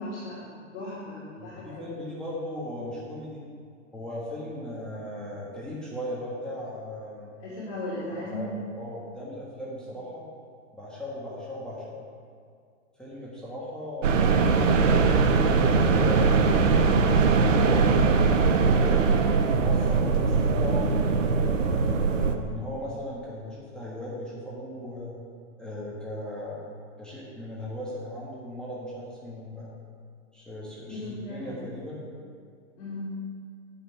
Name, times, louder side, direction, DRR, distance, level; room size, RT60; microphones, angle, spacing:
voice 1, 0.0-1.9 7.4-8.5 30.9-31.6 32.8-33.1, left 1 dB, 45° left, -8 dB, 2.6 m, -37 dB
voice 2, 1.4-3.4 3.9-7.3 8.1-10.2 10.8-12.0 13.0-14.5 14.8-16.7 17.3-17.9 18.4-19.1 19.4-21.2 21.9-25.2 25.6-26.7 27.0-29.7 30.3-32.0, left 1 dB, ahead, -7 dB, 1.5 m, -37 dB
sound 1, 14.0-22.4, right 4 dB, 80° right, 1.0 m, -21 dB
9.2 x 5.8 x 6.4 m, 2.2 s
hypercardioid pair, 140°, 38 cm